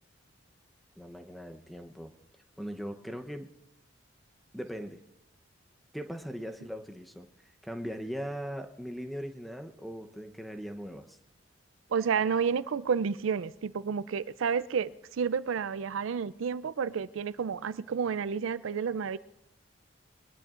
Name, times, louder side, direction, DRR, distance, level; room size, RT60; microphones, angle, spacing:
voice 1, 1.0-2.1 2.6-3.5 4.5-5.0 5.9-11.2, equal, ahead, 5 dB, 0.8 m, -40 dB
voice 2, 11.9-19.2, right 6 dB, 80° right, 16 dB, 0.4 m, -30 dB
22.0 x 21.0 x 2.5 m, 0.88 s
head